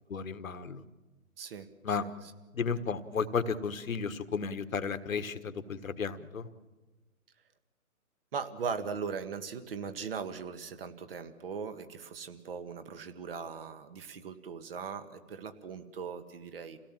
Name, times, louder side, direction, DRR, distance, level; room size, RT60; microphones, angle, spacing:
voice 1, 0.1-0.8 1.8-2.0 2.5-6.5, left 5 dB, 65° left, 11 dB, 1.5 m, -33 dB
voice 2, 1.4-2.1 8.3-16.8, right 6 dB, 40° right, 9 dB, 1.8 m, -39 dB
28.0 x 17.0 x 7.5 m, 1.2 s
hypercardioid pair, 150°, 44 cm